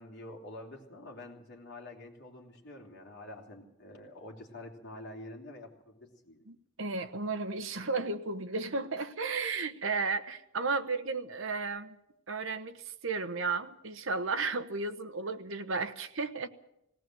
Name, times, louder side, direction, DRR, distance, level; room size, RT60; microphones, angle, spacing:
voice 1, 0.0-6.4, left 1 dB, 50° left, 0 dB, 3.3 m, -47 dB
voice 2, 6.5-12.0 12.3-16.5, right 4 dB, 60° right, 10 dB, 1.1 m, -34 dB
18.5 x 18.0 x 7.8 m, 0.82 s
head